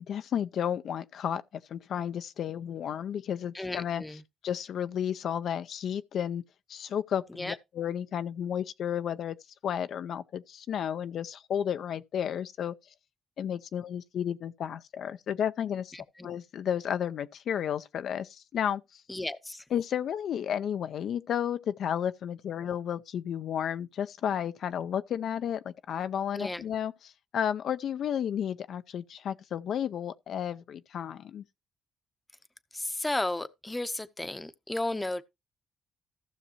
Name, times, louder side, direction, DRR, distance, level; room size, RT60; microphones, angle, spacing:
voice 1, 0.1-1.4 1.7-4.0 4.4-6.4 6.7-9.4 9.6-12.8 13.4-15.9 16.2-19.0 19.7-26.9 27.3-31.4, left 9 dB, 65° left, 0.5 m, -32 dB
voice 2, 3.5-4.2 7.3-7.6 15.9-16.0 19.1-19.6 26.3-26.6 32.7-35.2, left 2 dB, 15° left, 0.7 m, -33 dB
15.0 x 6.5 x 2.9 m
cardioid pair, 90°, 0 cm